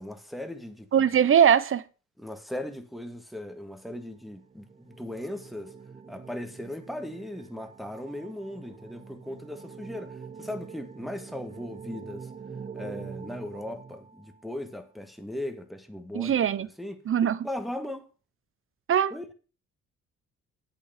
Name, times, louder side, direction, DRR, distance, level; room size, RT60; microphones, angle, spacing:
voice 1, 0.0-0.9 2.2-5.7 6.1-12.3 12.7-17.0 17.4-18.1 19.1-19.3, left 1 dB, ahead, 1.8 m, -38 dB
voice 2, 0.9-1.8 16.1-16.7 17.1-17.5 18.9-19.1, right 8 dB, 45° right, 0.8 m, -21 dB
sound 1, 4.0-14.7, right 6 dB, 25° right, 1.0 m, -45 dB
8.5 x 8.4 x 5.0 m
cardioid pair, 90°, 30 cm